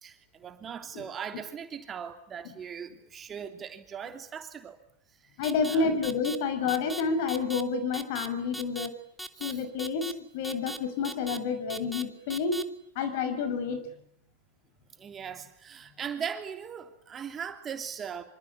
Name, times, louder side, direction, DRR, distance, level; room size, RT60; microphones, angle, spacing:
voice 1, 0.0-4.8 5.7-6.0 9.3-9.6 15.0-18.2, right 7 dB, 30° right, 6 dB, 3.2 m, -39 dB
voice 2, 5.4-8.9 9.4-12.6 12.9-13.8, left 5 dB, 60° left, 10 dB, 5.9 m, -29 dB
sound 1, 5.4-5.8 6.0-6.4 6.7-7.0 7.3-7.6 7.9-8.3 8.5-8.9 9.2-9.5 9.8-10.1 10.4-10.8 11.0-11.4 11.7-12.0 12.3-12.6, right 1 dB, ahead, 2.1 m, -38 dB
26.0 x 25.5 x 8.6 m, 0.70 s
figure-of-eight pair, 85°, 0 cm